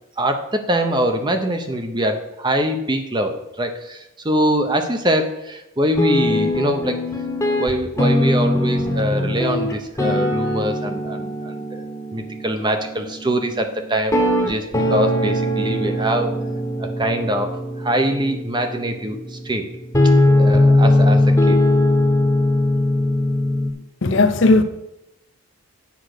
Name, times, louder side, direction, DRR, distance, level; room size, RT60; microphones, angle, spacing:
voice 1, 0.2-7.0 7.5-11.8 12.1-16.4 16.8-19.7 20.4-21.6, right 1 dB, 20° right, 0.7 m, -23 dB
sound 1, 6.0-23.7, left 1 dB, 15° left, 1.0 m, -20 dB
voice 2, 24.0-24.6, left 2 dB, 55° left, 0.7 m, -15 dB
8.2 x 5.1 x 6.5 m
head